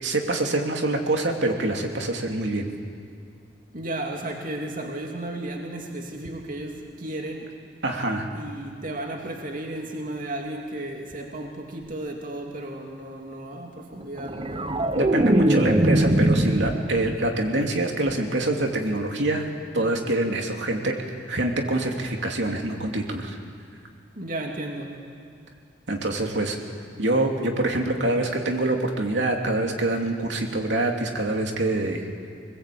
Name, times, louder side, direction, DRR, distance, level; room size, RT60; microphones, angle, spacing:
voice 1, 0.0-2.7 7.8-8.3 14.9-19.5 19.7-23.4 25.9-26.6 27.0-32.1, right 2 dB, 75° right, 2 dB, 2.8 m, -25 dB
voice 2, 3.7-7.5 8.3-14.7 24.2-25.0, right 1 dB, 50° right, 1 dB, 2.6 m, -34 dB
sound 1, 14.2-17.4 17.7-18.1, right 1 dB, 30° right, 1.0 m, -22 dB
24.5 x 20.5 x 8.5 m, 2.3 s
head